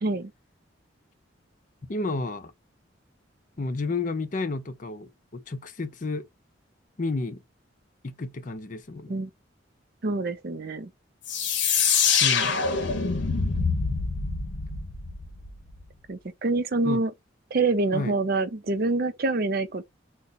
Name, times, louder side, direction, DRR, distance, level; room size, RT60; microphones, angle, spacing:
voice 1, 1.9-2.5 3.6-6.2 7.0-7.4 8.0-9.1 12.2-12.6 16.8-17.0 17.9-18.1, left 3 dB, 40° left, 0.5 m, -31 dB
voice 2, 10.0-10.9 16.1-17.1 17.5-19.9, right 3 dB, 50° right, 0.5 m, -26 dB
sound 1, 11.3-15.8, left 6 dB, 70° left, 0.8 m, -25 dB
2.8 x 2.1 x 3.9 m
head